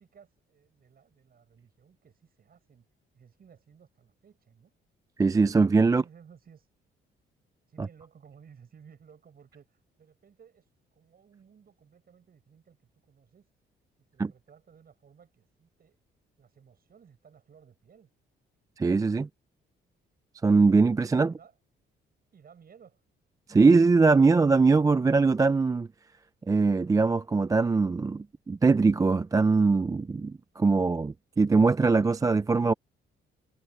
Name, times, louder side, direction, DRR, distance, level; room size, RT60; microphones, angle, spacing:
voice 1, 0.0-2.9 3.1-4.7 5.9-6.7 7.7-12.8 13.1-13.5 14.1-16.0 16.4-18.1 21.2-21.5 22.3-23.0, right 7 dB, 50° right, 7.6 m, -57 dB
voice 2, 5.2-6.0 14.2-14.3 18.8-19.3 20.4-21.3 23.5-25.9 26.5-32.7, right 4 dB, 15° right, 0.4 m, -22 dB
cardioid pair, 90°, 20 cm